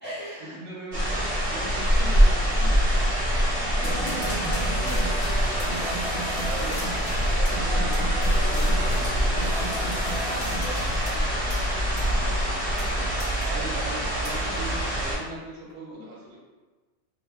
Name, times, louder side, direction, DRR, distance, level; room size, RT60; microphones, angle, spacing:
voice 1, 0.0-0.6 3.7-6.1 10.1-13.1, equal, 15° left, -11 dB, 0.3 m, -40 dB
voice 2, 0.5-2.8 6.4-9.8 13.4-16.4, right 1 dB, 60° right, -4 dB, 0.9 m, -40 dB
sound 1, 0.9-15.2, equal, 35° right, 0.9 m, -24 dB
sound 2, 3.8-11.2, equal, 70° left, 1.1 m, -35 dB
sound 3, 4.0-4.6 5.2-5.7 6.0-6.1 6.2-6.4 6.8-6.9 7.4-7.5 7.9-8.0 8.4-8.8 9.0-9.1 9.6-10.3 10.6-11.2 11.5-11.6 12.0-12.1 12.4-12.9 13.2-13.9 14.2-14.4 14.9-15.7, left 1 dB, 50° left, 1.1 m, -45 dB
2.6 x 2.2 x 3.5 m, 1.3 s
omnidirectional pair, 1.2 m